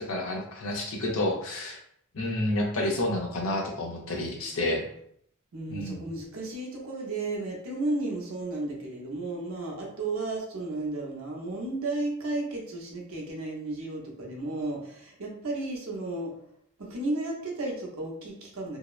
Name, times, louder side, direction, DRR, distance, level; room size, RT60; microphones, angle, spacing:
voice 1, 0.0-1.8 2.1-4.8 5.7-6.0, left 1 dB, 75° left, 0 dB, 0.6 m, -29 dB
voice 2, 5.5-16.3 16.8-18.8, right 2 dB, 85° right, -1 dB, 0.8 m, -33 dB
2.7 x 2.0 x 2.4 m, 0.68 s
head